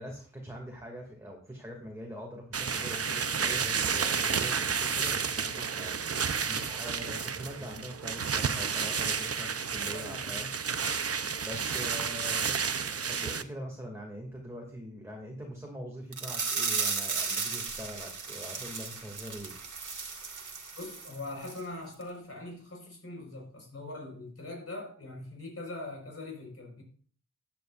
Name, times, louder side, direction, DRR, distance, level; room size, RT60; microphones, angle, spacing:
voice 1, 0.0-10.5 11.1-12.6 13.1-19.5, equal, 10° right, -1 dB, 2.5 m, -43 dB
sound 1, 2.5-13.4, right 6 dB, 50° right, 0.8 m, -31 dB
voice 2, 9.9-10.4 20.7-26.8, left 2 dB, 50° left, 1 dB, 4.9 m, -42 dB
sound 2, 16.1-21.2 21.4-21.6 22.0-22.1, right 4 dB, 75° right, 2.1 m, -34 dB
15.5 x 9.6 x 2.6 m, 0.43 s
wide cardioid pair, 70°, 31 cm